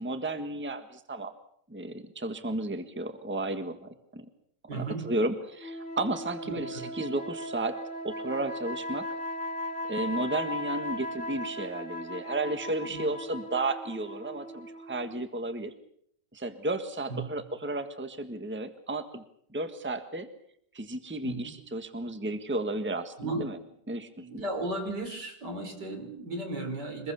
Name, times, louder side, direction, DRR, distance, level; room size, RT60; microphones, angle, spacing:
voice 1, 0.0-1.3 1.7-4.2 4.7-7.8 8.0-9.1 9.9-15.7 16.3-19.2 19.5-20.3 20.7-23.6 23.9-24.2, right 2 dB, 5° right, 8 dB, 1.5 m, -33 dB
voice 2, 4.7-5.1 6.4-6.8 12.9-13.0 17.1-17.2 21.2-21.4 23.2-23.4 24.2-27.1, right 2 dB, 80° right, 5 dB, 5.0 m, -35 dB
sound 1, 5.6-15.3, left 1 dB, 30° left, 2.7 m, -37 dB
25.0 x 21.5 x 7.1 m, 0.68 s
omnidirectional pair, 1.8 m